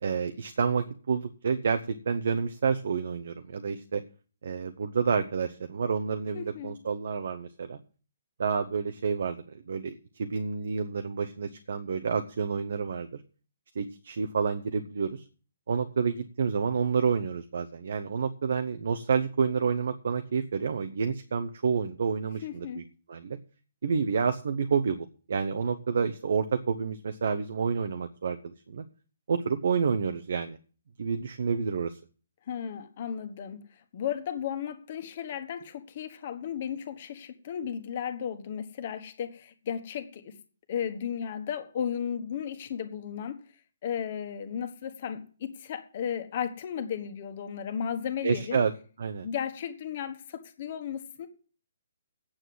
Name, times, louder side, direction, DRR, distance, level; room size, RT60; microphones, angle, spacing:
voice 1, 0.0-4.0 4.4-7.8 8.4-13.2 13.7-15.3 15.7-22.8 23.1-23.4 23.8-28.8 29.3-30.6 31.0-32.0 48.2-48.7 49.0-49.3, right 5 dB, 55° right, 8 dB, 0.8 m, -29 dB
voice 2, 6.3-6.7 22.4-22.8 32.5-33.6 33.9-40.4 40.7-43.4 43.8-48.6 49.2-51.3, left 8 dB, 40° left, 9 dB, 1.5 m, -34 dB
8.9 x 7.7 x 7.7 m, 0.40 s
figure-of-eight pair, 130°, 0 cm